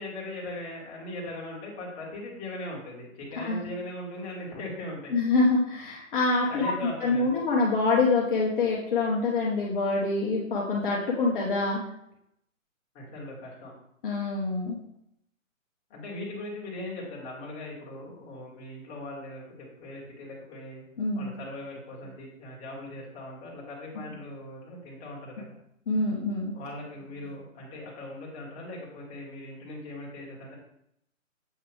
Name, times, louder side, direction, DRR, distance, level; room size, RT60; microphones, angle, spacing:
voice 1, 0.0-5.1 6.5-7.4 12.9-13.7 15.9-20.8 21.1-25.5 26.5-30.5, left 1 dB, 15° left, -4 dB, 1.9 m, -39 dB
voice 2, 5.1-6.7 7.0-11.8 14.0-14.8 21.0-21.3 25.9-26.5, left 3 dB, 40° left, -4 dB, 1.4 m, -25 dB
7.9 x 5.2 x 3.5 m, 0.75 s
figure-of-eight pair, 135°, 41 cm